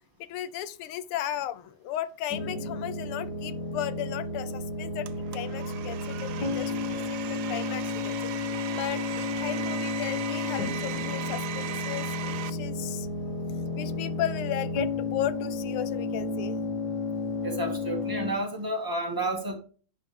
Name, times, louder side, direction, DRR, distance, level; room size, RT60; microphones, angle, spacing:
voice 1, 0.2-5.1 5.3-8.2 8.7-13.1 13.8-16.6, left 12 dB, 85° left, 15 dB, 1.6 m, -35 dB
sound 1, 2.3-18.3, left 3 dB, 50° left, 2.1 m, -32 dB
Domestic sounds home sounds, 5.1-12.5, right 10 dB, 75° right, 0.9 m, -38 dB
voice 2, 17.4-19.6, right 1 dB, 10° right, 2 dB, 1.5 m, -31 dB
10.5 x 5.6 x 3.3 m, 0.39 s
omnidirectional pair, 2.4 m